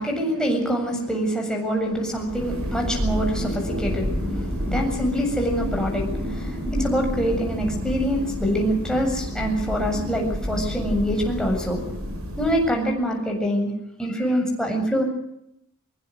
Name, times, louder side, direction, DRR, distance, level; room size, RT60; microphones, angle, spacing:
voice 1, 0.0-11.8 12.4-13.7 14.0-15.0, equal, 5° left, 0 dB, 7.5 m, -25 dB
Thunder, 2.1-13.0, equal, 75° right, 7.1 m, -29 dB
24.0 x 23.0 x 6.5 m, 0.79 s
head